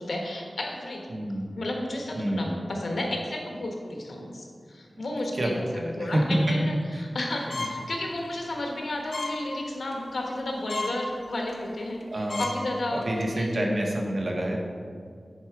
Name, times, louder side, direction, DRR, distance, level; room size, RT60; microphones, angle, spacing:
voice 1, 0.0-1.2 1.6-13.8, left 1 dB, 85° left, 1 dB, 1.2 m, -33 dB
voice 2, 1.1-1.5 2.1-2.5 5.3-5.6 6.0-6.5 6.9-7.0 7.5-7.7 12.1-12.4 12.9-14.6, right 1 dB, 55° right, 0 dB, 1.2 m, -27 dB
sound 1, 7.5-7.9 8.3-8.4 9.1-9.4 9.8-10.0 10.4-10.5 10.7-11.0 11.5-11.6 12.0-12.1 12.3-12.6 13.0-13.2, left 3 dB, 60° left, 0.7 m, -33 dB
9.7 x 4.7 x 4.7 m, 2.1 s
wide cardioid pair, 90°, 0 cm